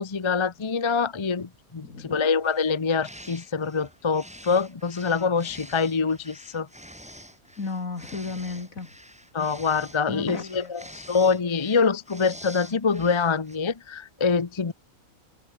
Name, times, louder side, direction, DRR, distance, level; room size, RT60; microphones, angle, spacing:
voice 1, 0.0-6.7 9.3-14.7, left 5 dB, 25° left, 0.6 m, -25 dB
voice 2, 1.8-2.2 7.6-8.9 10.1-10.7, left 4 dB, 60° left, 3.4 m, -34 dB
sound 1, 2.4-13.6, equal, 5° right, 5.1 m, -47 dB
omnidirectional pair, 1.6 m